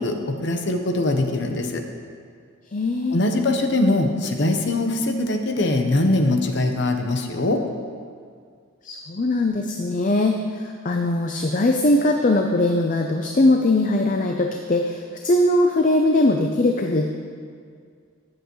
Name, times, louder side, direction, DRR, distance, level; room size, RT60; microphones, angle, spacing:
voice 1, 0.0-1.8 3.1-7.6, left 2 dB, 55° left, 4 dB, 0.9 m, -22 dB
voice 2, 2.7-3.2 8.8-17.1, left 2 dB, 40° left, 3 dB, 0.5 m, -20 dB
18.0 x 7.7 x 3.1 m, 2.1 s
head